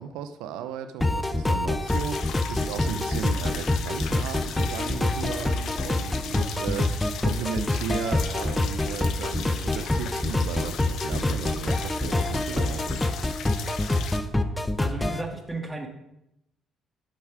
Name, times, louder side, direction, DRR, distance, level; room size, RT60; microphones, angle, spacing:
voice 1, 0.0-13.0, right 8 dB, 90° right, 10 dB, 0.6 m, -35 dB
sound 1, 1.0-15.2, left 2 dB, 15° left, 0.8 m, -26 dB
sound 2, 1.9-14.2, left 8 dB, 70° left, 0.9 m, -38 dB
voice 2, 14.8-15.9, right 2 dB, 10° right, 3 dB, 2.1 m, -34 dB
10.5 x 6.4 x 5.0 m, 0.84 s
cardioid pair, 80°, 0 cm